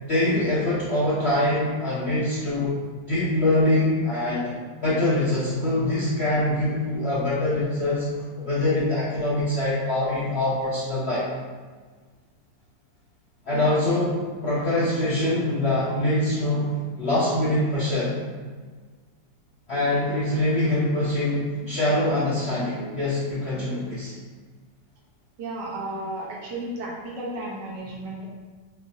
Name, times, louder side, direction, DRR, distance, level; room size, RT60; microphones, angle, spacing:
voice 1, 0.0-2.7 3.1-4.5 4.8-8.1 8.4-11.2 13.4-18.1 19.7-24.2, left 1 dB, 60° left, -9 dB, 0.7 m, -24 dB
voice 2, 25.4-28.3, right 1 dB, 70° right, -3 dB, 1.3 m, -33 dB
5.9 x 2.5 x 2.6 m, 1.5 s
omnidirectional pair, 2.0 m